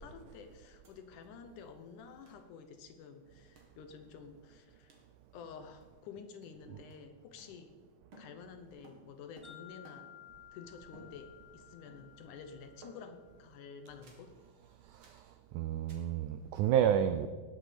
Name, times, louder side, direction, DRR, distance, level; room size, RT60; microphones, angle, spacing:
voice 1, 0.0-4.9 5.3-7.7 8.2-10.1 10.5-14.3, left 6 dB, 70° left, 8 dB, 2.1 m, -51 dB
sound 1, 0.8-0.9 1.2-1.3 2.3-2.5 3.6-3.8 4.9-5.1 5.8-6.1 6.4-7.9 8.1-10.3 10.9-11.6 11.9-12.3 12.8-13.3 14.0-14.3 15.0-15.3 15.9-16.2, right 1 dB, 40° right, 2.4 m, -59 dB
Wind chime, 9.4-13.7, left 12 dB, 15° left, 3.3 m, -56 dB
voice 2, 14.8-17.3, right 9 dB, 85° right, 10 dB, 1.8 m, -31 dB
19.0 x 8.3 x 5.1 m, 1.5 s
omnidirectional pair, 4.2 m